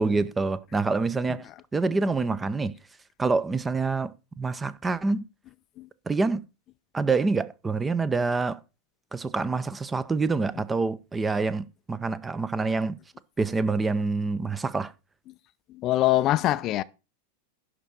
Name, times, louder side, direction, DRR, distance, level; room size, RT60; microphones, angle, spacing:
voice 1, 0.0-1.4 1.7-2.7 3.2-5.3 6.1-6.4 6.9-8.6 9.1-13.0 13.4-14.9, right 3 dB, 15° right, 0.6 m, -26 dB
voice 2, 15.7-16.8, left 15 dB, 35° left, 0.4 m, -23 dB
11.0 x 4.3 x 6.3 m
figure-of-eight pair, 90°, 0 cm